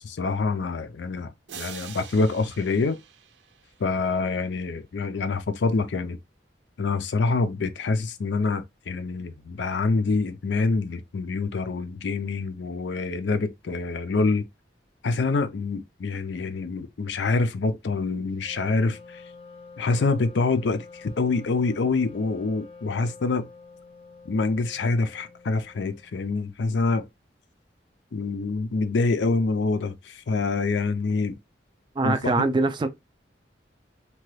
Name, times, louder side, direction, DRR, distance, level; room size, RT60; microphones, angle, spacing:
voice 1, 0.0-3.0 3.8-6.2 6.8-14.5 15.0-19.2 19.8-23.5 24.3-27.1 28.1-31.4 32.0-32.5, left 3 dB, 80° left, 0.5 m, -26 dB
sound 1, 1.5-4.3, right 8 dB, 85° right, 0.5 m, -44 dB
Wind instrument woodwind instrument, 18.3-26.2, left 4 dB, 30° left, 0.5 m, -47 dB
voice 2, 32.0-32.9, right 3 dB, 25° right, 0.3 m, -23 dB
2.9 x 2.2 x 3.1 m
head